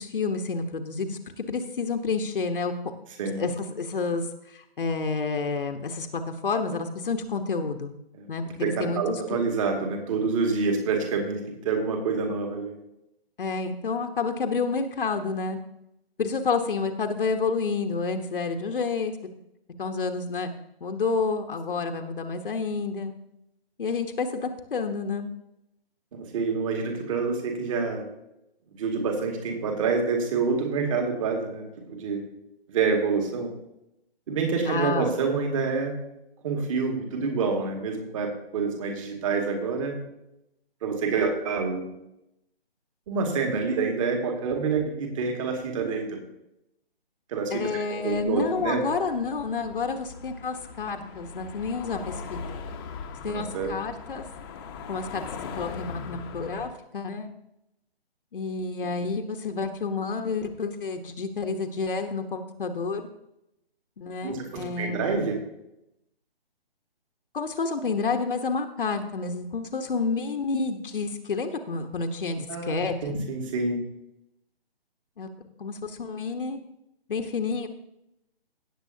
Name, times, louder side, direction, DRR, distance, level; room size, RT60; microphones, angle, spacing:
voice 1, 0.0-2.7 3.3-7.9 8.3-9.4 13.4-15.6 16.2-19.1 19.8-20.5 20.8-23.1 23.8-25.3 34.7-35.1 47.5-52.4 53.2-54.2 54.9-57.3 58.3-63.1 64.0-65.0 67.3-73.1 75.2-75.3 75.6-76.6 77.1-77.7, left 4 dB, 60° left, 5 dB, 1.2 m, -29 dB
voice 2, 8.6-12.8 26.1-28.0 28.7-32.2 32.7-33.5 34.3-36.0 36.4-39.9 40.8-41.9 43.1-46.2 47.3-48.9 53.2-53.8 58.9-59.1 64.2-65.4 72.5-73.9, right 4 dB, 30° right, 3 dB, 2.2 m, -27 dB
sound 1, 48.1-56.7, left 5 dB, 20° left, 1.0 m, -40 dB
17.0 x 7.6 x 2.8 m, 0.83 s
figure-of-eight pair, 145°, 31 cm